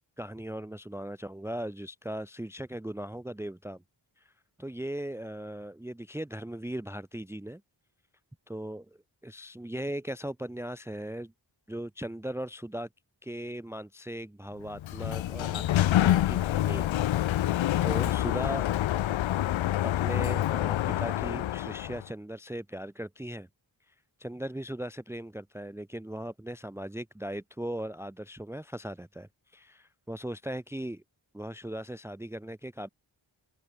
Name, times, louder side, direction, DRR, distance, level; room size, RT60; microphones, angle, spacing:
voice 1, 0.2-3.8 4.2-4.3 4.6-7.6 8.5-11.3 11.7-12.9 13.2-16.9 17.3-18.7 19.8-23.5 23.9-24.0 24.2-31.0 31.3-32.9, right 1 dB, 5° right, 0.7 m, -38 dB
Sliding door, 14.7-22.1, left 13 dB, 85° left, 0.6 m, -27 dB
open air
wide cardioid pair, 75°, 45 cm